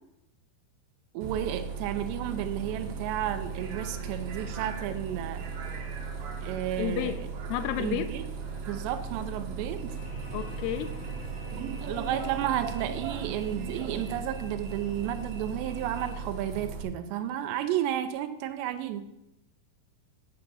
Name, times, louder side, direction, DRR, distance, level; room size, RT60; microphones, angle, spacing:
voice 1, 1.1-5.5 6.4-7.2 7.8-8.2 8.7-9.9 11.8-19.1, right 11 dB, 80° right, 9 dB, 2.8 m, -32 dB
Bus, 1.2-16.8, right 5 dB, 65° right, 2.6 m, -37 dB
voice 2, 6.8-7.2 7.5-8.2 10.3-11.0, left 11 dB, 80° left, 11 dB, 2.4 m, -31 dB
sound 1, 9.9-15.2, right 1 dB, 45° left, 1.6 m, -47 dB
8.3 x 6.7 x 6.9 m, 0.88 s
omnidirectional pair, 5.3 m